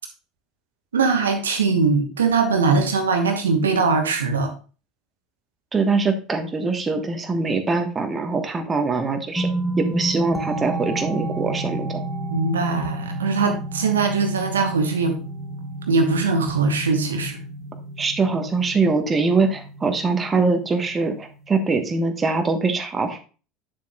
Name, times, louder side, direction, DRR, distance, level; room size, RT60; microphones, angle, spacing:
voice 1, 0.9-4.5 12.3-15.2 15.9-17.4, right 4 dB, 75° right, 5 dB, 1.1 m, -21 dB
voice 2, 5.7-9.5 9.8-12.0 18.0-23.2, right 3 dB, 20° right, 6 dB, 1.2 m, -23 dB
sound 1, 9.4-22.0, right 2 dB, ahead, 1.3 m, -31 dB
8.2 x 7.2 x 2.3 m, 0.34 s
figure-of-eight pair, 70°, 0 cm